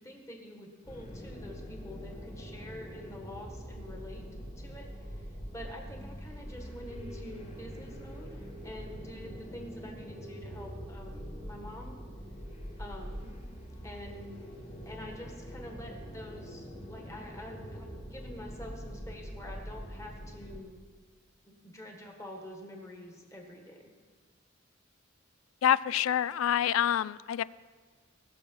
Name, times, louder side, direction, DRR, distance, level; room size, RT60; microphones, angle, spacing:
voice 1, 0.0-4.2 4.6-5.3 5.5-12.0 12.8-13.3 13.8-14.4 14.9-20.8 21.5-23.9, left 1 dB, 15° left, 1 dB, 1.6 m, -47 dB
sound 1, 0.8-20.6, equal, 30° left, 1.5 m, -44 dB
voice 2, 25.6-27.4, left 10 dB, 90° left, 20 dB, 0.3 m, -27 dB
20.5 x 6.9 x 4.6 m, 1.5 s
head